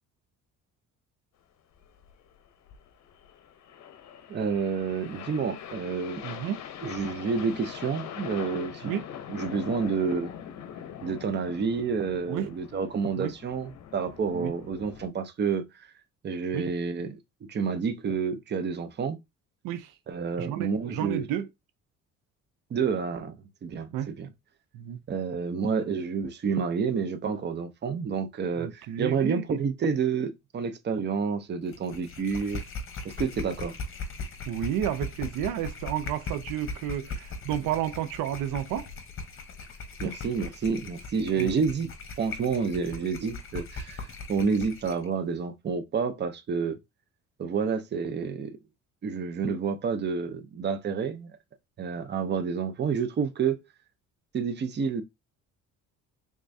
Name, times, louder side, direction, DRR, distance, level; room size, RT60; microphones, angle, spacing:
sound 1, 1.7-15.1, left 9 dB, 55° left, 0.7 m, -43 dB
voice 1, 4.3-6.2 6.8-8.9 9.3-10.3 11.0-15.9 16.2-17.2 17.5-19.2 20.1-21.3 22.7-23.3 23.6-24.3 25.1-32.6 33.0-33.8 40.0-41.9 42.2-46.8 47.4-48.5 49.0-51.3 51.8-53.6 54.3-55.0, right 5 dB, 35° right, 0.6 m, -29 dB
voice 2, 6.2-6.6 8.8-9.1 12.3-12.5 13.2-13.3 14.3-14.5 16.5-16.7 19.6-19.9 20.4-21.5 23.9-24.1 24.7-25.0 28.6-29.4 34.5-38.9 41.4-41.6, right 11 dB, 80° right, 0.5 m, -31 dB
sound 2, 31.7-45.1, left 3 dB, 40° left, 0.9 m, -39 dB
3.6 x 3.0 x 2.6 m
cardioid pair, 100°, 33 cm